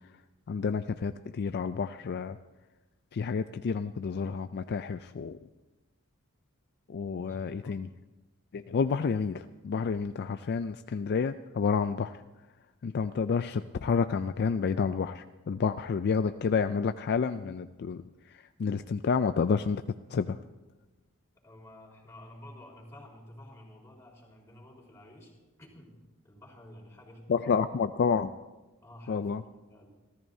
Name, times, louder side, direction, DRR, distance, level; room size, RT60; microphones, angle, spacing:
voice 1, 0.5-2.4 3.1-5.4 6.9-7.9 8.5-12.2 12.8-18.0 18.6-19.8 20.1-20.4 27.3-28.3 29.1-29.4, left 5 dB, 50° left, 10 dB, 0.4 m, -29 dB
voice 2, 7.2-7.8 21.3-25.3 25.6-27.6 28.8-29.4 29.7-29.9, left 1 dB, 15° left, -3 dB, 4.1 m, -51 dB
28.0 x 14.0 x 2.7 m, 1.1 s
head